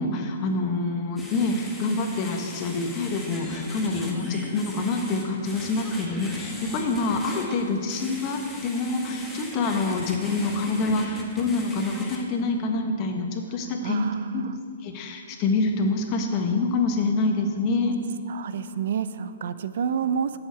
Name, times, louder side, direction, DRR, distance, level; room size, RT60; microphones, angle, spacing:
voice 1, 0.0-14.0 14.3-14.4 14.8-17.9, left 3 dB, 35° left, 3 dB, 1.4 m, -26 dB
sound 1, 1.2-12.2, left 1 dB, 5° left, 1.5 m, -38 dB
voice 2, 13.8-14.6 18.3-20.4, right 7 dB, 65° right, 13 dB, 0.5 m, -29 dB
7.8 x 7.2 x 8.3 m, 2.2 s
hypercardioid pair, 135°, 0 cm